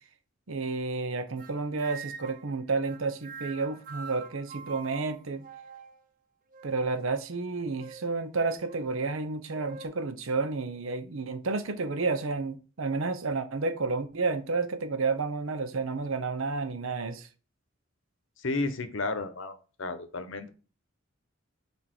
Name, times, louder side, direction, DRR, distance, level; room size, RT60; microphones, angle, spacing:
voice 1, 0.5-5.4 6.6-17.3, right 3 dB, 75° right, 0.7 m, -31 dB
sound 1, 1.4-2.5 2.8-6.0 6.5-7.1 7.8-8.1 8.7-8.9 9.5-9.9, right 5 dB, 40° right, 0.5 m, -45 dB
voice 2, 18.4-20.5, left 3 dB, 65° left, 0.8 m, -33 dB
6.3 x 3.5 x 4.4 m
head